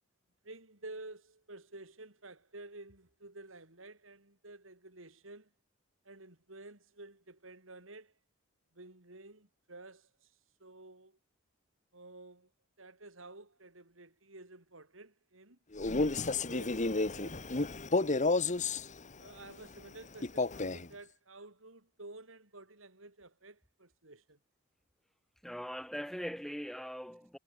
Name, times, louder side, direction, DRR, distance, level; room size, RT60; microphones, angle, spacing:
voice 1, 0.4-5.5 6.0-8.1 8.7-11.2 11.9-12.5 12.8-15.6 16.2-17.4 17.9-18.4 19.2-24.4, right 2 dB, 80° right, 4.6 m, -52 dB
Male speech man speaking, 15.7-18.9 20.2-20.9, left 3 dB, 40° left, 1.3 m, -31 dB
voice 2, 25.4-27.4, equal, ahead, 4.2 m, -41 dB
head